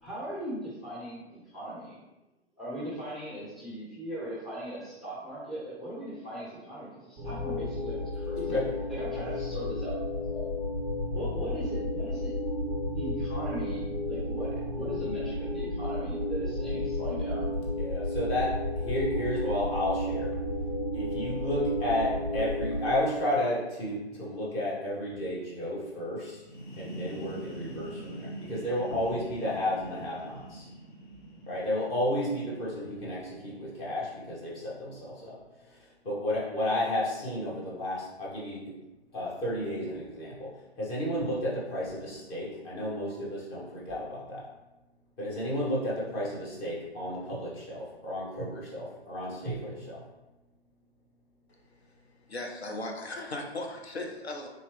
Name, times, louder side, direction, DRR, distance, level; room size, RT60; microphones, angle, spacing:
voice 1, 0.0-2.0 2.6-8.6 8.9-10.4 11.1-12.3 12.9-17.5, right 1 dB, ahead, -8 dB, 0.6 m, -39 dB
sound 1, 7.2-22.9, left 1 dB, 30° right, 0.8 m, -32 dB
voice 2, 17.8-20.4 20.9-26.4 26.8-30.7 31.5-38.8 39.1-44.5 45.2-50.0, left 1 dB, 20° left, -6 dB, 1.0 m, -32 dB
sound 2, 26.3-33.9, right 1 dB, 45° left, 1.0 m, -45 dB
voice 3, 52.3-54.5, left 2 dB, 75° left, 2 dB, 0.7 m, -37 dB
3.7 x 2.9 x 3.3 m, 1.0 s
figure-of-eight pair, 120°, 32 cm